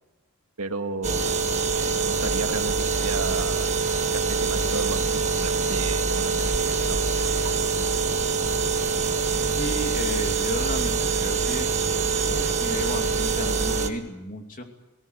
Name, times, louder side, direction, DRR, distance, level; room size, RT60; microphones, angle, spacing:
voice 1, 0.6-1.4 1.7-3.7 4.0-7.4, right 3 dB, 85° right, 6 dB, 1.8 m, -34 dB
sound 1, 1.0-13.9, right 4 dB, 30° right, 1.6 m, -24 dB
voice 2, 9.5-11.7 12.2-14.6, left 1 dB, 40° left, 4 dB, 2.7 m, -33 dB
18.5 x 18.5 x 9.7 m, 1.0 s
head